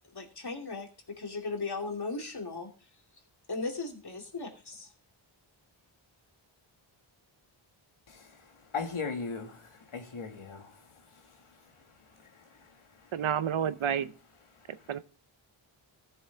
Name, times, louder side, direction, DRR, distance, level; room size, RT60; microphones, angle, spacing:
voice 1, 0.1-2.7 3.5-4.9, left 3 dB, 50° left, 2.6 m, -37 dB
voice 2, 8.1-8.5 8.7-10.8 11.1-11.2 12.3-12.7 13.0-13.1 14.8-14.9, left 5 dB, 90° left, 2.0 m, -38 dB
voice 3, 13.1-14.1 14.9-15.0, right 8 dB, 75° right, 0.8 m, -29 dB
14.5 x 7.0 x 3.4 m
wide cardioid pair, 65°, 49 cm